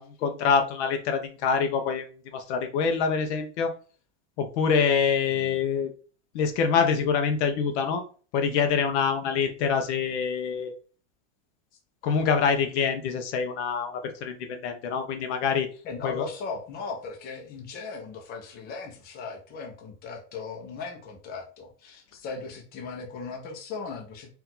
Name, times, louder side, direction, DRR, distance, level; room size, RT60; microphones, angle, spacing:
voice 1, 0.0-2.1 2.3-3.7 4.4-5.9 6.3-8.0 8.3-10.7 12.0-15.7 16.0-16.3, left 6 dB, 60° left, 6 dB, 0.9 m, -25 dB
voice 2, 5.3-5.6 15.8-24.3, left 4 dB, 25° left, 2 dB, 0.8 m, -38 dB
4.7 x 2.7 x 3.8 m, 0.38 s
supercardioid pair, 175°, 39 cm